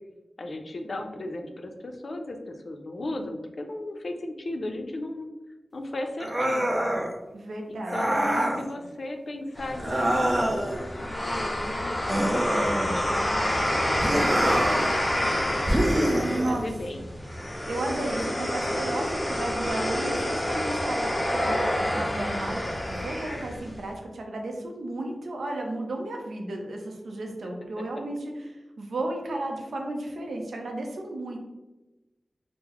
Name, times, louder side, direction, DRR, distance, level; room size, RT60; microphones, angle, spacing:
voice 1, 0.4-5.3 5.7-6.8 7.7-12.0 12.8-13.8 14.1-17.0, left 1 dB, 65° left, 4 dB, 0.4 m, -36 dB
sound 1, 6.2-7.1 7.8-8.6 9.8-10.8 12.1-13.2 14.0-14.9 15.7-16.7, right 1 dB, 30° right, 0.5 m, -25 dB
voice 2, 7.3-8.0 8.3-8.6 16.1-16.7 17.0-17.1 17.7-31.4, right 2 dB, 90° right, 2 dB, 0.5 m, -33 dB
sound 2, 9.6-23.8, left 1 dB, 20° left, 0.6 m, -28 dB
3.7 x 2.0 x 2.9 m, 1.1 s
cardioid pair, 55°, 0 cm